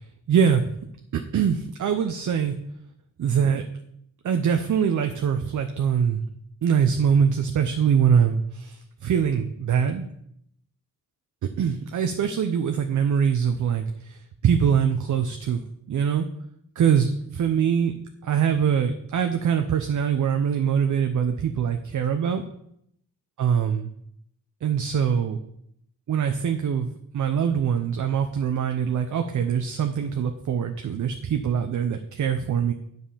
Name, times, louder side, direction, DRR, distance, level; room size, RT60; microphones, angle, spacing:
voice 1, 0.3-0.6 1.1-2.6 3.2-3.6 4.2-6.2 6.6-10.0 11.6-15.6 15.9-16.3 16.8-17.9 18.2-22.4 23.4-23.9 24.6-25.4 26.1-26.9 27.1-32.7, right 7 dB, 55° right, 6 dB, 0.7 m, -23 dB
8.9 x 5.4 x 5.6 m, 0.74 s
cardioid pair, 90°, 37 cm